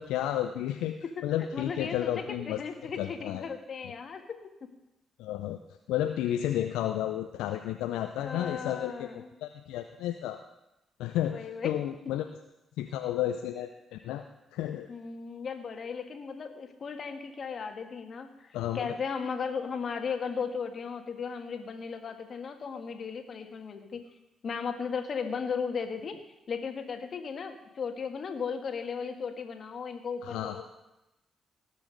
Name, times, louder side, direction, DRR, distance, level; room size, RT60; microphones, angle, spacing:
voice 1, 0.0-1.0 1.2-2.6 3.0-3.5 5.2-5.6 5.9-9.1 9.4-10.4 11.0-12.3 12.8-14.2 14.5-14.9 18.5-18.9 30.2-30.6, left 12 dB, 75° left, 6 dB, 0.5 m, -32 dB
voice 2, 1.5-4.2 4.6-4.7 8.2-9.3 11.3-11.7 14.9-24.0 24.4-26.2 26.5-30.6, left 6 dB, 55° left, 6 dB, 1.6 m, -36 dB
18.5 x 6.3 x 5.1 m, 0.93 s
hypercardioid pair, 40°, 0 cm